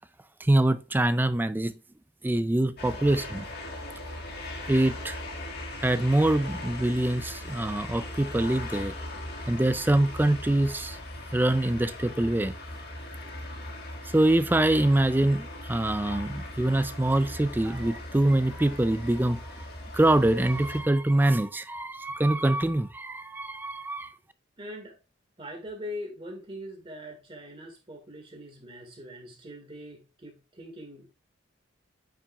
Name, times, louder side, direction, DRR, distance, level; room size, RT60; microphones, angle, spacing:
voice 1, 0.4-1.7 2.2-3.5 4.7-5.2 5.8-8.9 9.5-11.0 11.3-12.5 14.1-19.4 19.9-24.1, right 1 dB, 10° right, 0.4 m, -24 dB
sound 1, 2.8-20.8, left 1 dB, 55° left, 1.6 m, -39 dB
voice 2, 24.6-25.0 25.4-31.1, equal, 30° right, 1.9 m, -42 dB
8.7 x 5.8 x 2.3 m
head